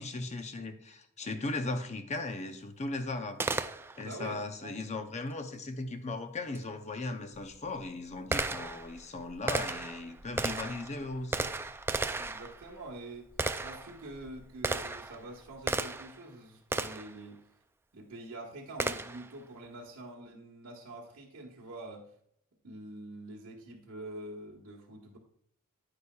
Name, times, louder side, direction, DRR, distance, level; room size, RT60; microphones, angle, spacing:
voice 1, 0.0-3.4 4.0-11.5, left 2 dB, 30° left, 7 dB, 0.7 m, -37 dB
Gunshot gunfire, 3.4-4.2 6.5-6.6 7.4-16.2 16.7-17.2 18.8-19.3, right 3 dB, 10° right, 0.3 m, -35 dB
voice 2, 4.0-4.8 12.1-13.3 13.6-17.4 17.9-22.1 22.6-25.2, right 2 dB, 80° right, -4 dB, 1.4 m, -46 dB
9.9 x 9.7 x 2.3 m, 0.68 s
head